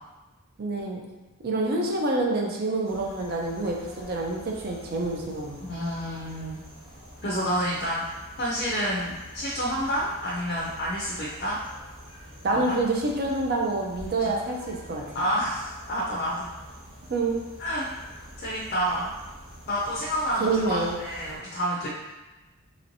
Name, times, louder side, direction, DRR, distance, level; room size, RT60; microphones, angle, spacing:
voice 1, 0.6-1.0 1.4-5.6 12.4-15.0 17.1-17.4 20.4-21.0, right 2 dB, 45° right, 1 dB, 0.4 m, -27 dB
sound 1, 2.8-21.4, equal, 70° right, 1.0 m, -46 dB
voice 2, 5.6-6.6 7.2-8.0 8.4-11.6 12.4-12.8 15.1-16.5 17.6-17.9 18.2-19.1 19.7-21.9, equal, 45° left, -6 dB, 0.5 m, -29 dB
3.0 x 3.0 x 2.6 m, 1.1 s
head